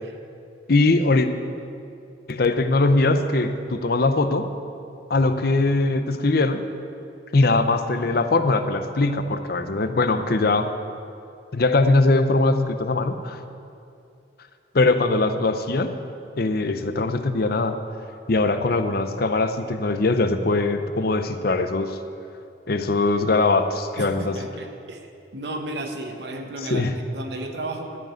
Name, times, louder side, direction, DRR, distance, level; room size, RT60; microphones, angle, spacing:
voice 1, 0.7-1.3 2.3-4.5 5.1-6.6 7.3-10.7 11.5-13.4 14.7-15.9 16.4-17.8 18.3-22.0 22.7-24.4 26.7-26.9, left 2 dB, 55° left, 9 dB, 0.7 m, -21 dB
voice 2, 24.0-28.0, right 2 dB, 65° right, 4 dB, 1.0 m, -34 dB
13.0 x 5.0 x 9.1 m, 2.6 s
head